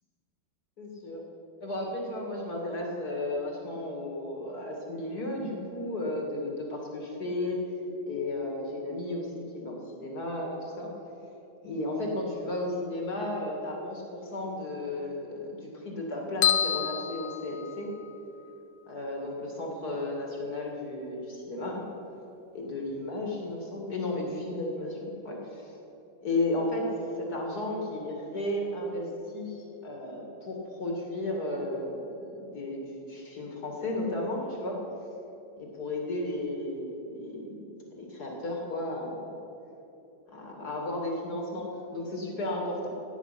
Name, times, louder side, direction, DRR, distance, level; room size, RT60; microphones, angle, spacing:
voice 1, 0.8-1.2 1.6-7.6 8.0-10.9 11.6-17.9 18.9-21.9 22.5-25.7 26.2-26.9 27.2-34.8 35.6-39.4 40.3-42.9, left 1 dB, 55° left, -1 dB, 2.4 m, -34 dB
sound 1, 16.4-18.2, left 10 dB, 80° left, 1.3 m, -28 dB
16.0 x 9.1 x 5.7 m, 3.0 s
omnidirectional pair, 2.0 m